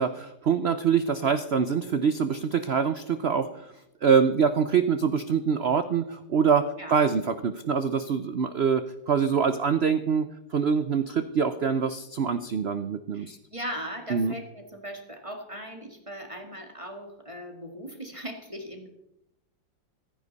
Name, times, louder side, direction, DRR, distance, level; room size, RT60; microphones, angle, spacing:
voice 1, 0.0-3.7 4.0-13.4 14.1-14.3, right 6 dB, 85° right, 11 dB, 0.5 m, -25 dB
voice 2, 13.1-18.9, equal, 15° right, 4 dB, 1.7 m, -39 dB
15.5 x 14.5 x 4.1 m, 0.84 s
omnidirectional pair, 2.0 m